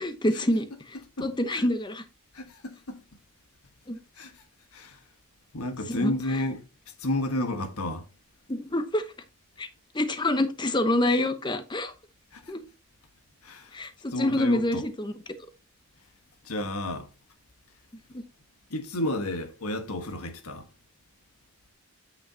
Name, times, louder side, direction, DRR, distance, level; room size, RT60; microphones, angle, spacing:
voice 1, 0.0-2.0 3.9-4.0 5.9-6.1 8.5-9.0 9.6-9.7 9.9-11.9 12.5-12.6 13.7-15.1 18.1-18.2, left 1 dB, 20° left, 0.8 m, -27 dB
voice 2, 1.2-1.6 2.3-3.0 4.2-4.4 4.7-5.0 5.5-6.6 7.0-8.0 12.3-12.5 13.4-13.8 14.1-14.8 16.4-17.1 18.7-20.7, left 1 dB, 85° left, 1.5 m, -32 dB
8.3 x 6.8 x 2.8 m
head